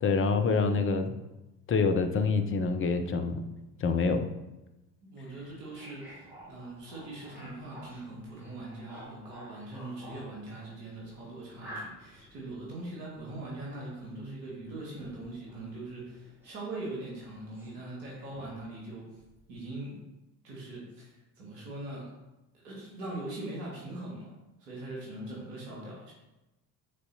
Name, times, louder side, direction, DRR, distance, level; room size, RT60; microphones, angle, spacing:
voice 1, 0.0-1.2 1.7-3.4 3.8-4.3, left 4 dB, 25° left, 6 dB, 0.6 m, -26 dB
voice 2, 5.0-19.1 19.5-20.0 20.4-21.1 21.4-22.1 22.5-24.3 24.6-26.1, right 2 dB, 70° right, -3 dB, 1.9 m, -41 dB
sound 1, 5.4-16.8 17.1-18.6 19.1-19.6, equal, 5° right, 2.2 m, -51 dB
9.3 x 4.0 x 2.7 m, 1.0 s
figure-of-eight pair, 55°, 50 cm